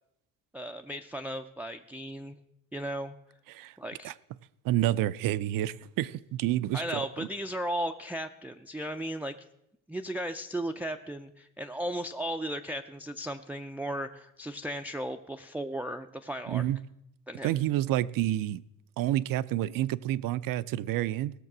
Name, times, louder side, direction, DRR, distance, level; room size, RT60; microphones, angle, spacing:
voice 1, 0.5-2.4 2.7-3.1 3.8-4.1 6.7-9.4 9.9-16.7 17.3-17.5, equal, 5° right, 6 dB, 0.4 m, -35 dB
voice 2, 4.6-6.8 16.5-16.8 17.4-18.6 19.0-21.3, right 14 dB, 75° right, 17 dB, 0.5 m, -28 dB
17.0 x 6.7 x 6.0 m, 0.80 s
cardioid pair, 130°, 33 cm